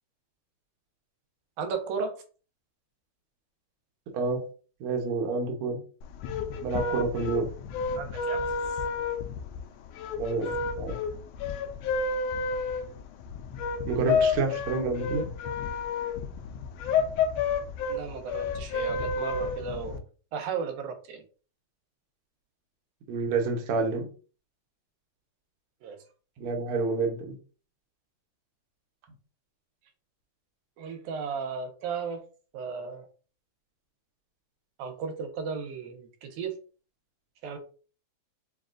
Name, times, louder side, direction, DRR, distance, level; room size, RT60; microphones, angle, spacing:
voice 1, 1.6-2.2 8.0-8.8 17.9-20.0 20.3-21.2 25.8-26.0 30.8-32.3 32.5-33.1 34.8-36.6 37.4-37.6, right 5 dB, 85° right, 4 dB, 2.2 m, -35 dB
voice 2, 4.8-5.8 6.6-7.5 10.2-11.0 13.9-15.3 23.1-24.1 26.4-27.3, right 4 dB, 65° right, 2 dB, 1.5 m, -28 dB
sound 1, 6.0-20.0, left 4 dB, 85° left, 1.4 m, -30 dB
6.3 x 2.3 x 2.5 m, 0.37 s
omnidirectional pair, 3.4 m